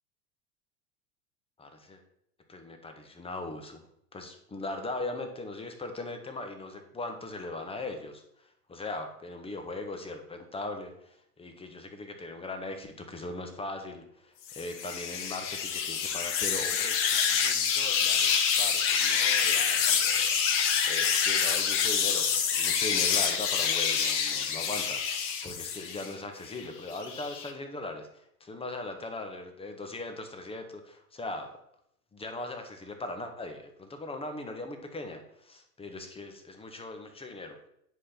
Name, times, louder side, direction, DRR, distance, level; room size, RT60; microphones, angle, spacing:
voice 1, 1.6-2.0 2.5-3.8 4.1-22.3 22.5-31.5 32.1-37.6, left 2 dB, 10° left, 5 dB, 1.5 m, -40 dB
sound 1, 14.5-26.1 26.5-27.5, left 7 dB, 50° left, 1.4 m, -27 dB
9.8 x 5.2 x 5.9 m, 0.75 s
figure-of-eight pair, 90°, 46 cm